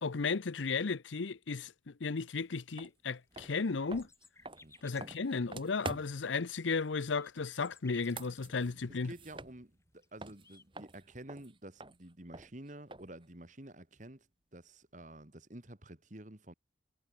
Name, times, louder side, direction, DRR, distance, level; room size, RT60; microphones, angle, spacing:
voice 1, 0.0-4.1 4.8-9.1, left 4 dB, 90° left, 0.7 m, -34 dB
sound 1, 2.4-10.7, left 4 dB, 15° left, 4.0 m, -62 dB
sound 2, 2.8-2.9 3.3-6.3 7.9-9.9 10.2-13.3, right 2 dB, 25° right, 2.5 m, -47 dB
voice 2, 8.6-14.3 14.5-16.5, right 1 dB, 40° right, 2.2 m, -50 dB
head